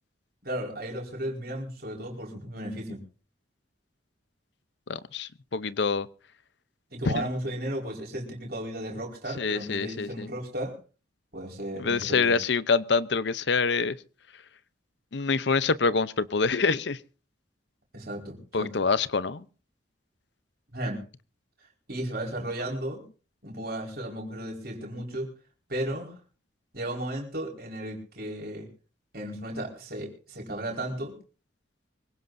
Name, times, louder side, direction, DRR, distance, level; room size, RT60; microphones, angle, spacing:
voice 1, 0.4-3.0 6.9-10.8 11.3-12.3 17.9-18.7 20.7-21.0 21.9-23.0 23.4-25.3 25.7-26.2 26.7-28.7 29.1-31.1, right 1 dB, 50° right, 4.7 m, -34 dB
voice 2, 4.9-6.1 7.1-7.2 9.4-10.3 11.8-14.0 15.1-17.0 18.5-19.4, left 4 dB, 65° left, 0.7 m, -26 dB
24.5 x 17.0 x 2.6 m
head